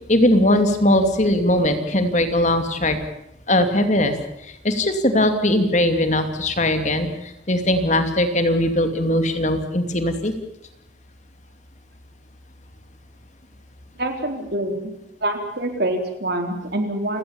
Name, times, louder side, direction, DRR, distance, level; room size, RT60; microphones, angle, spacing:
voice 1, 0.1-3.0 3.5-4.1 4.4-10.3, left 1 dB, 35° left, 7 dB, 2.6 m, -20 dB
voice 2, 14.0-14.9 15.2-17.2, right 1 dB, 55° right, 5 dB, 4.0 m, -25 dB
29.5 x 18.0 x 7.2 m, 0.82 s
head